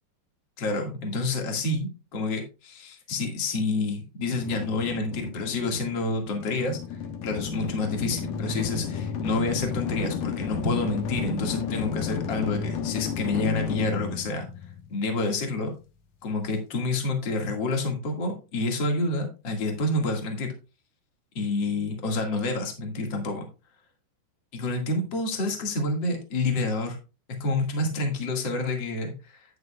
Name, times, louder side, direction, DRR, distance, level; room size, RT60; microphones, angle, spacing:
voice 1, 0.6-6.8 7.2-14.5 14.9-15.7 16.2-20.5 21.3-23.5 24.5-27.0 27.4-29.3, left 2 dB, 45° left, 3 dB, 1.5 m, -28 dB
sound 1, 4.3-15.3, left 6 dB, 70° left, 2.1 m, -32 dB
9.7 x 9.5 x 2.4 m, 0.30 s
omnidirectional pair, 5.1 m